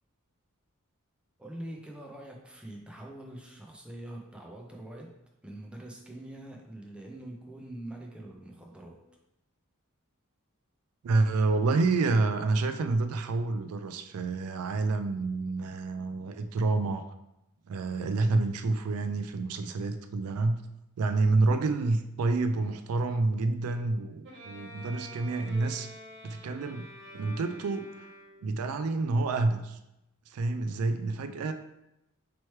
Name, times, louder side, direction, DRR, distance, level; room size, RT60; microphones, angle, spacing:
voice 1, 1.4-5.2 5.4-9.0, right 1 dB, 5° right, -1 dB, 0.5 m, -44 dB
voice 2, 11.0-17.1 17.7-20.6 21.0-25.9 26.2-26.9 27.1-28.1 28.4-29.8 30.3-31.5, right 3 dB, 80° right, 9 dB, 0.3 m, -28 dB
Bowed string instrument, 24.2-28.7, equal, 55° right, 0.8 m, -48 dB
3.1 x 3.1 x 4.4 m, 0.87 s
head